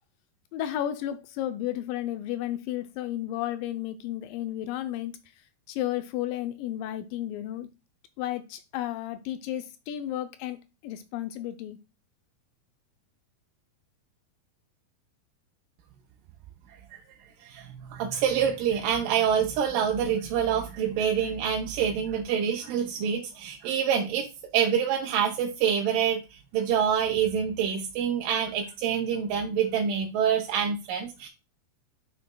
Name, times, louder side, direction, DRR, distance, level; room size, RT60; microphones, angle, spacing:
voice 1, 0.5-5.1 5.7-7.7 8.2-10.6 10.8-11.8, left 12 dB, 85° left, 2.0 m, -33 dB
voice 2, 17.4-24.3 24.5-26.2 26.5-31.3, right 8 dB, 75° right, 2.2 m, -26 dB
9.3 x 5.6 x 2.2 m
omnidirectional pair, 4.4 m